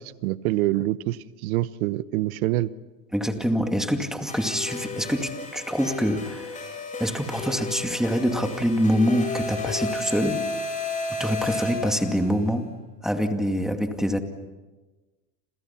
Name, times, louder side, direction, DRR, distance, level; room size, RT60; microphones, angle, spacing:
voice 1, 0.0-2.7, right 16 dB, 75° right, 16 dB, 1.1 m, -26 dB
voice 2, 3.1-6.6 7.0-10.5 11.1-14.2, equal, ahead, 5 dB, 2.2 m, -25 dB
sound 1, 4.3-12.4, left 4 dB, 15° left, 7.4 m, -33 dB
29.5 x 28.0 x 5.8 m, 1.2 s
supercardioid pair, 120°, 43 cm